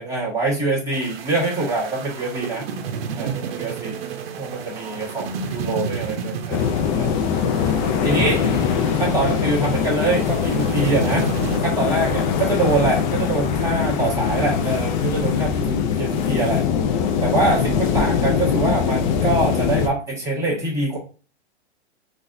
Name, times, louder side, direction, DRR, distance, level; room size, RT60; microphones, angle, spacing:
voice 1, 0.0-2.6 3.1-3.9 4.4-6.6 6.9-7.1 8.0-8.4 9.0-11.3 11.6-16.6 17.2-21.0, right 2 dB, 10° right, -6 dB, 1.5 m, -24 dB
sound 1, 0.9-11.6, right 6 dB, 60° right, 0.7 m, -31 dB
sound 2, 6.5-19.9, left 7 dB, 45° left, 0.5 m, -22 dB
3.9 x 2.5 x 2.6 m, 0.37 s
hypercardioid pair, 135°, 33 cm